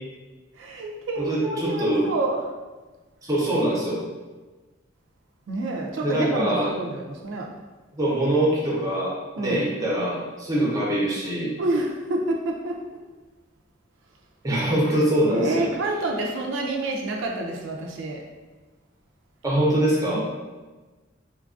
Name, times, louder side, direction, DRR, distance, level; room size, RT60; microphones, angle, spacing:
voice 1, 0.5-2.5 5.5-7.5 9.4-9.7 11.6-12.8 15.3-18.2 20.1-20.2, right 2 dB, 75° right, 0 dB, 0.3 m, -28 dB
voice 2, 1.2-2.1 3.2-4.0 6.0-6.7 7.9-11.5 14.4-15.7 19.4-20.2, right 1 dB, 15° right, -5 dB, 0.6 m, -23 dB
3.1 x 2.3 x 2.4 m, 1.3 s
head